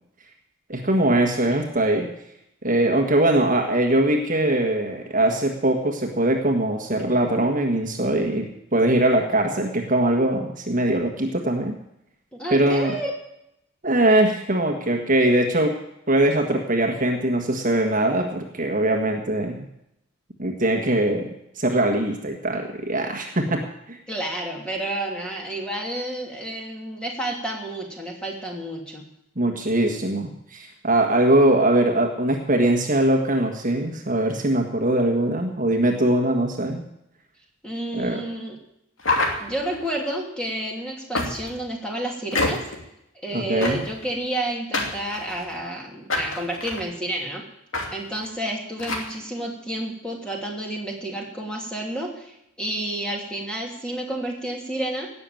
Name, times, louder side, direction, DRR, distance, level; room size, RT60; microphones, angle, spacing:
voice 1, 0.7-2.1 2.6-11.8 12.5-13.0 13.8-15.8 16.1-19.6 20.4-23.6 23.9-24.0 29.4-36.8 37.9-38.2 43.3-43.8, right 1 dB, 40° right, 2 dB, 1.5 m, -21 dB
voice 2, 12.3-13.1 24.1-29.0 37.6-38.6 39.4-42.6 43.2-47.4 47.9-55.1, right 1 dB, 5° left, -1 dB, 2.8 m, -30 dB
sound 1, 39.0-39.9 41.1-41.6 42.3-42.8 43.6-44.0 44.7-45.6 46.1-46.8 47.7-47.9 48.1-48.3 48.8-49.1, left 2 dB, 65° left, 2.7 m, -26 dB
17.5 x 7.0 x 9.1 m, 0.82 s
head